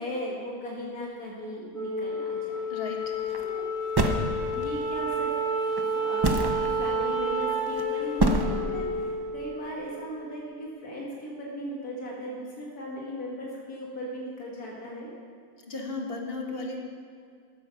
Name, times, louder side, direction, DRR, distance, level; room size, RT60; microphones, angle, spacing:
voice 1, 0.0-2.6 3.4-3.7 4.5-5.3 6.0-15.1, equal, 90° left, -3 dB, 2.2 m, -37 dB
Wind instrument woodwind instrument, 1.7-10.3, right 1 dB, 85° right, 3.6 m, -30 dB
voice 2, 2.7-3.1 15.7-16.8, left 3 dB, 40° left, 1 dB, 1.6 m, -35 dB
sound 1, 3.1-3.5 4.0-4.8 5.7-5.8 6.2-6.7 7.5-7.8 8.2-8.4, right 1 dB, 25° right, 0.6 m, -24 dB
13.0 x 9.4 x 5.7 m, 2.1 s
omnidirectional pair, 1.6 m